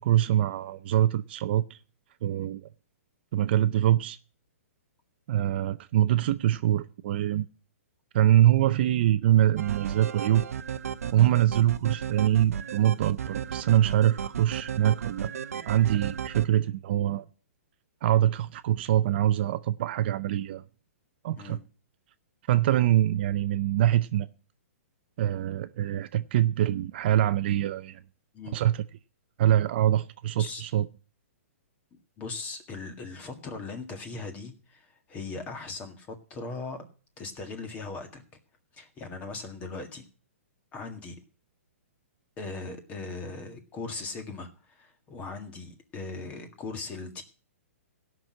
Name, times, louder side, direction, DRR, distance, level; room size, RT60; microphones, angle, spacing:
voice 1, 0.0-1.8 2.2-2.7 3.3-4.2 5.3-7.5 8.1-10.5 11.1-15.3 15.7-17.3 18.0-20.6 21.2-21.6 22.5-24.3 25.2-28.0 28.5-28.8 29.4-30.9, right 12 dB, 45° right, 0.5 m, -24 dB
sound 1, 9.6-16.5, right 8 dB, 85° right, 0.8 m, -34 dB
voice 2, 30.4-30.7 32.2-36.8 37.2-38.2 38.7-40.0 40.7-41.2 42.4-47.2, left 3 dB, 20° left, 1.8 m, -39 dB
16.0 x 6.1 x 7.4 m
hypercardioid pair, 155°, 8 cm